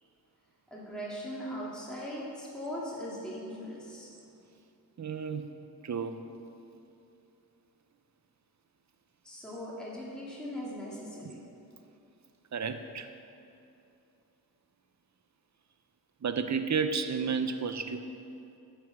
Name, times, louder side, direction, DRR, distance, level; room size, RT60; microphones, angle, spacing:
voice 1, 0.7-4.1 9.2-11.4, equal, ahead, -7 dB, 2.4 m, -39 dB
voice 2, 5.0-5.5 5.8-6.2 11.2-11.3 12.5-13.1 16.2-18.1, right 5 dB, 45° right, 9 dB, 0.7 m, -32 dB
9.2 x 7.1 x 6.0 m, 2.7 s
cardioid pair, 50°, 39 cm